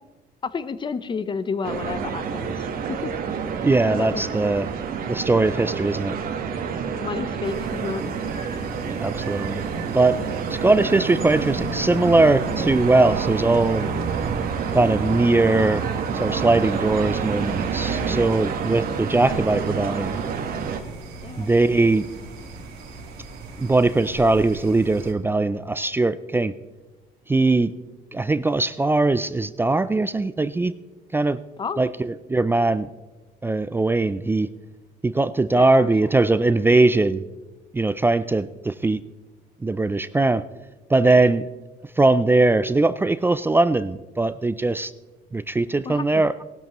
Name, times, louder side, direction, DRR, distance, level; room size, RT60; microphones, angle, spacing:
voice 1, 0.4-3.1 3.9-4.2 7.0-8.1 21.2-21.5 31.6-31.8 35.5-35.9 45.8-46.2, left 5 dB, 30° left, 13 dB, 0.7 m, -31 dB
sound 1, 1.6-20.8, right 6 dB, 60° right, 1.3 m, -28 dB
voice 2, 3.6-4.7 5.1-6.2 8.9-9.6 9.9-10.2 10.5-13.9 14.7-15.8 16.1-20.2 21.4-22.1 23.6-26.5 27.3-27.7 28.1-30.7 31.1-31.4 31.8-32.9 33.4-34.5 35.0-37.2 37.7-39.0 39.6-40.4 40.9-41.5 42.0-44.9 45.3-46.3, right 2 dB, 15° right, 15 dB, 0.3 m, -20 dB
sound 2, 7.4-25.1, right 3 dB, 75° right, 1.8 m, -40 dB
18.5 x 12.0 x 3.0 m, 1.2 s
cardioid pair, 110°, 17 cm